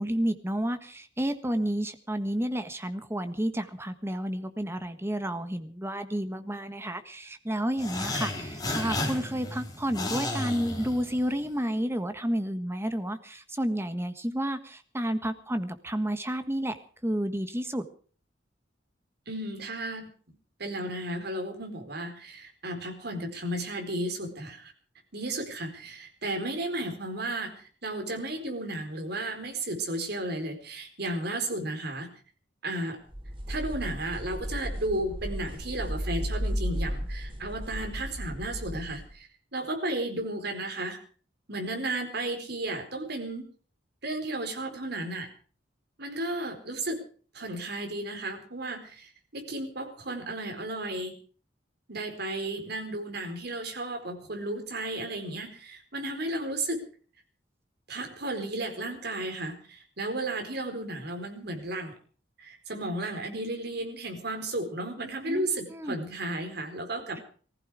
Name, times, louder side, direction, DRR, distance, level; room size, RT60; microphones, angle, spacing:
voice 1, 0.0-16.7 17.0-17.8 65.3-65.9, equal, 15° right, 10 dB, 1.5 m, -31 dB
sound 1, 7.8-11.5, left 2 dB, 20° left, 4.4 m, -33 dB
voice 2, 19.3-20.1 20.6-24.7 25.1-32.1 32.6-33.0 33.5-41.0 41.5-43.4 44.0-45.3 46.0-47.0 47.3-51.1 51.9-56.8 57.9-61.9 62.4-67.2, right 1 dB, 60° right, 4 dB, 4.3 m, -34 dB
sound 2, 33.1-39.1, equal, 30° right, 3.2 m, -34 dB
19.5 x 15.0 x 4.9 m, 0.43 s
head